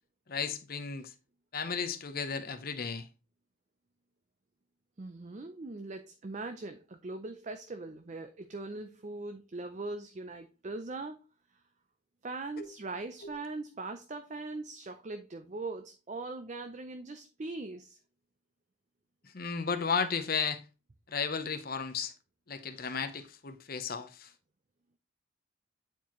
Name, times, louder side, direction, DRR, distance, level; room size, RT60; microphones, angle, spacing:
voice 1, 0.3-1.1 1.5-3.1 12.6-12.7 13.2-13.3 19.2-20.7 21.1-22.1 22.5-24.3, left 5 dB, 50° left, 0.7 m, -34 dB
voice 2, 5.0-11.2 12.2-18.0, right 3 dB, 35° right, 0.5 m, -41 dB
9.4 x 4.4 x 3.0 m
head